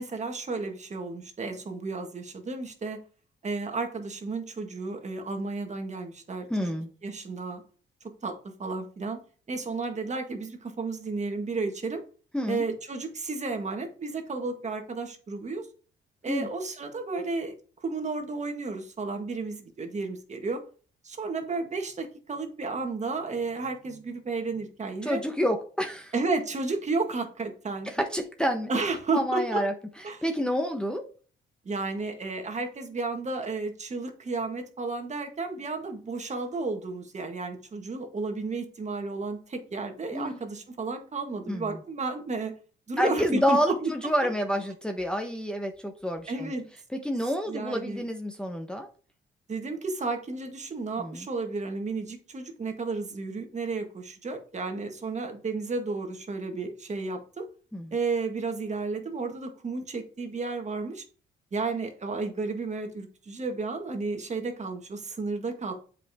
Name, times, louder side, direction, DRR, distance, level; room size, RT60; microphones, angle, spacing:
voice 1, 0.0-3.0 3.4-6.7 7.0-7.6 8.2-9.2 9.5-12.0 12.5-15.7 16.2-20.6 21.0-25.2 26.1-27.9 28.7-29.6 30.0-30.2 31.7-42.5 42.9-43.9 46.3-46.7 47.5-48.0 49.5-57.4 57.9-61.0 61.5-65.7, right 3 dB, 35° right, 5 dB, 1.7 m, -32 dB
voice 2, 6.5-6.9 12.3-12.6 16.2-16.5 25.0-26.1 27.8-28.7 29.1-29.7 30.2-31.0 40.1-40.4 41.5-41.8 43.0-46.5 47.0-48.9 51.0-51.3 57.7-57.9, equal, 5° left, 3 dB, 1.0 m, -28 dB
7.5 x 5.2 x 3.6 m, 0.40 s
cardioid pair, 90°, 20 cm